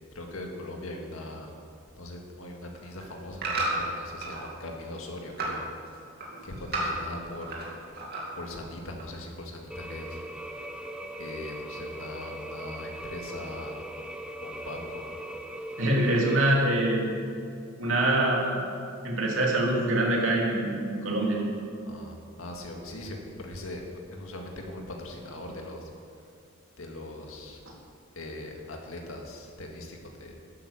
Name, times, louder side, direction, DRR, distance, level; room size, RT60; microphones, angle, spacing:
voice 1, 0.2-1.5 2.0-5.6 6.4-7.9 8.3-10.2 11.2-13.8 14.4-15.1 21.8-25.9 26.8-27.6 28.2-30.3, left 1 dB, 80° left, 1 dB, 1.9 m, -40 dB
sound 1, 2.6-4.5 4.8-5.6 5.9-7.7 7.9-8.5 9.0-9.1, right 2 dB, 50° right, 2.5 m, -33 dB
sound 2, 9.7-16.5, right 1 dB, 5° right, 0.7 m, -39 dB
voice 2, 15.8-17.1 17.8-18.6 19.0-21.4, right 1 dB, 65° right, -2 dB, 2.8 m, -24 dB
12.0 x 8.7 x 7.2 m, 2.5 s
head